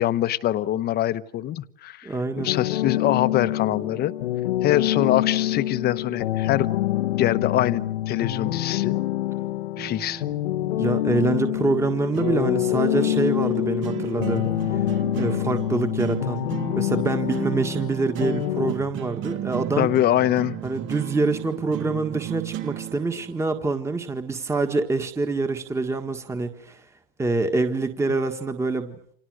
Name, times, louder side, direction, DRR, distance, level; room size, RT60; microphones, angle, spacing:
voice 1, 0.0-4.1 4.6-6.7 7.2-8.9 9.8-10.2 19.8-20.6, left 13 dB, 30° left, 15 dB, 1.1 m, -24 dB
voice 2, 2.0-2.5 10.8-14.4 14.7-14.8 15.1-16.4 16.7-19.9 20.6-26.9 27.2-28.9, right 3 dB, 10° right, 7 dB, 1.7 m, -25 dB
sound 1, 2.5-18.7, left 14 dB, 80° left, 1.2 m, -26 dB
sound 2, 9.8-23.7, right 13 dB, 35° right, 1.3 m, -35 dB
30.0 x 27.0 x 6.4 m, 0.65 s
supercardioid pair, 125°, 32 cm